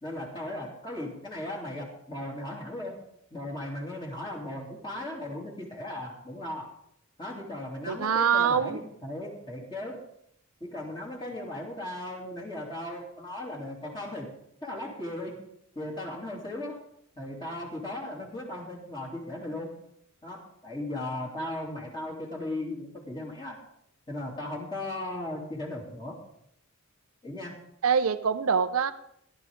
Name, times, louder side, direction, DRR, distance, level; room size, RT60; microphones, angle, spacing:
voice 1, 0.0-3.0 3.3-6.7 7.2-10.0 10.6-14.3 14.6-15.4 15.7-16.8 17.2-19.7 20.2-23.6 24.1-26.2 27.2-27.6, left 1 dB, 20° left, -3 dB, 2.9 m, -37 dB
voice 2, 7.9-8.8 27.8-28.9, right 6 dB, 75° right, 11 dB, 0.6 m, -24 dB
17.0 x 11.5 x 3.6 m, 0.72 s
head